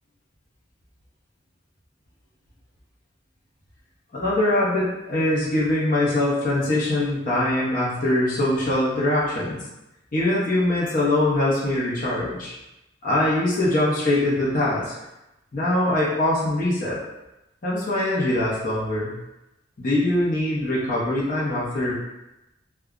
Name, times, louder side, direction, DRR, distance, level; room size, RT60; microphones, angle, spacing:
voice 1, 4.1-9.6 10.1-12.5 13.0-14.9 15.5-17.0 17.6-19.1 19.8-21.9, left 1 dB, 45° left, -7 dB, 0.7 m, -22 dB
2.2 x 2.0 x 3.5 m, 0.94 s
head